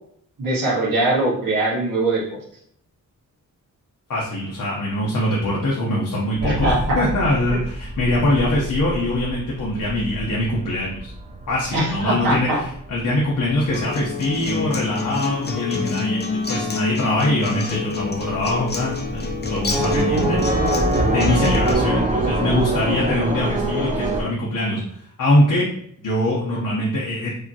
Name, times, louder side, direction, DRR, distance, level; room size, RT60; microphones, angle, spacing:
voice 1, 0.4-2.2 6.4-7.0 7.5-7.6 11.7-12.6, right 2 dB, 85° right, -5 dB, 1.7 m, -21 dB
voice 2, 4.1-11.1 11.5-20.4 21.1-24.8 25.2-25.7 26.0-27.4, left 1 dB, 70° left, -4 dB, 1.0 m, -23 dB
sound 1, 6.4-15.2 15.6-16.3 16.6-16.7 17.1-24.2, right 1 dB, 20° right, 0.5 m, -25 dB
Acoustic guitar, 13.7-21.7, left 4 dB, 30° left, 0.7 m, -27 dB
4.9 x 2.8 x 2.8 m, 0.68 s
wide cardioid pair, 130°, 33 cm